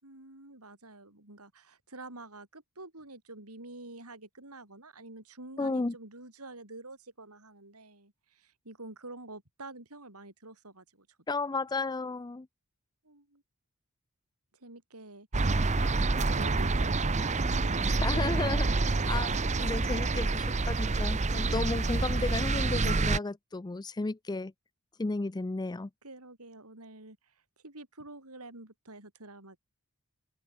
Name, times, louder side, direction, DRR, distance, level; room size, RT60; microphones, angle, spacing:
voice 1, 0.0-11.1 13.0-13.4 14.5-17.8 26.0-27.3 27.6-29.6, right 2 dB, 75° right, 6.7 m, -48 dB
voice 2, 5.6-5.9 11.3-12.5 18.0-18.7 19.1-24.5 25.0-25.9, left 3 dB, 20° left, 0.5 m, -33 dB
sound 1, 15.3-23.2, right 3 dB, 30° right, 0.8 m, -27 dB
open air
head